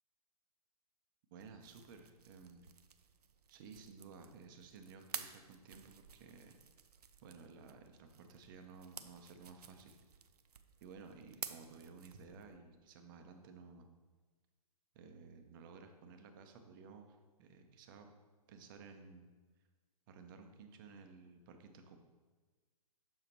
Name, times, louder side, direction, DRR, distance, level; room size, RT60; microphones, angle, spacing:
voice 1, 1.3-2.7 3.5-6.6 7.2-10.0 10.8-13.9 14.9-18.1 18.5-19.3 20.1-22.0, right 5 dB, 35° right, 6 dB, 0.6 m, -55 dB
sound 1, 1.4-12.6, right 7 dB, 75° right, 0.5 m, -53 dB
7.0 x 5.6 x 2.9 m, 1.3 s
figure-of-eight pair, 130°, 20 cm